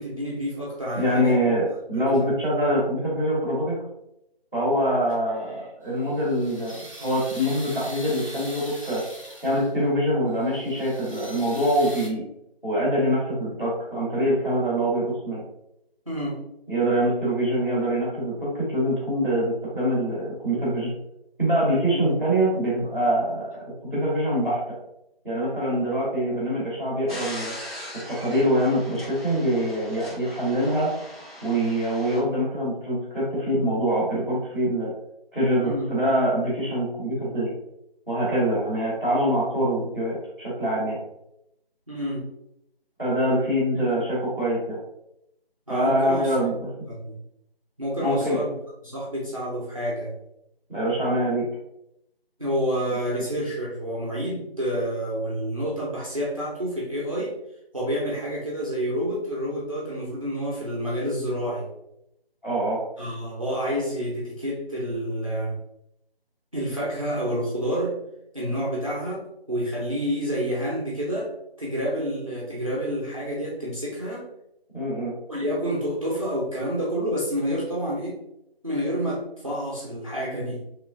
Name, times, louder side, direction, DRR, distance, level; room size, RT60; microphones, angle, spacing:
voice 1, 0.0-1.4 1.9-2.3 16.1-16.4 21.9-22.2 35.6-35.9 41.9-42.3 43.7-44.0 45.7-46.3 46.9-47.1 47.8-48.5 48.8-50.1 52.4-57.4 57.7-61.7 63.0-65.6 66.5-68.0 68.3-69.2 69.5-71.3 71.6-74.3 75.3-78.2 78.6-80.7, equal, 35° right, -5 dB, 0.6 m, -28 dB
voice 2, 0.9-3.8 4.5-9.0 9.4-12.2 12.6-15.4 16.7-20.9 21.4-23.5 23.9-24.6 25.2-27.5 28.1-30.9 31.4-34.9 35.3-37.5 38.1-41.0 43.0-44.8 45.7-46.5 48.0-48.4 50.7-51.4 62.4-62.8 74.7-75.1, equal, 10° left, -16 dB, 1.1 m, -24 dB
sound 1, 5.9-9.8 10.3-12.1, equal, 35° left, 0.6 m, -42 dB
sound 2, 27.1-32.2, left 1 dB, 70° left, 1.4 m, -40 dB
3.4 x 3.0 x 2.5 m, 0.82 s
figure-of-eight pair, 170°, 31 cm